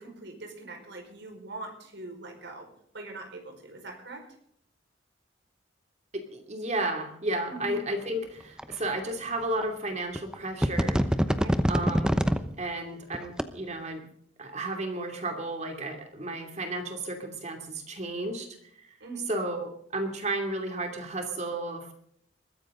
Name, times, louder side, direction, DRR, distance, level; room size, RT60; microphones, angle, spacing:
voice 1, 0.0-2.7 2.9-4.2 7.5-7.7 11.3-11.6 19.0-19.3, right 2 dB, 60° right, 3 dB, 5.0 m, -42 dB
voice 2, 6.1-11.0 11.7-12.2 12.6-14.1 14.4-18.5 18.8-18.9 19.3-21.9, right 1 dB, 35° right, 4 dB, 2.7 m, -33 dB
sound 1, 8.6-8.7 9.6-9.7 10.2-10.3 10.6-12.4 13.1-13.4, equal, 5° right, 0.9 m, -24 dB
21.5 x 15.0 x 3.8 m, 0.68 s
head